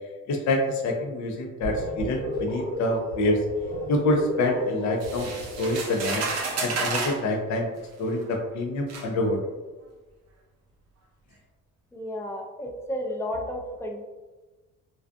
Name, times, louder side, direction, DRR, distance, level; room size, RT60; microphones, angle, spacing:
voice 1, 0.3-3.4 3.9-6.3 6.6-7.7 8.0-9.4, left 1 dB, 70° left, 2 dB, 0.5 m, -26 dB
sound 1, 1.6-6.1, equal, 85° left, 1.2 m, -33 dB
sound 2, 5.0-7.2 8.2-8.3 8.9-9.1, right 4 dB, 60° right, 0.5 m, -30 dB
voice 2, 11.9-14.0, equal, 10° left, 1 dB, 0.4 m, -32 dB
2.5 x 2.3 x 2.4 m, 1.2 s
cardioid pair, 90°, 30 cm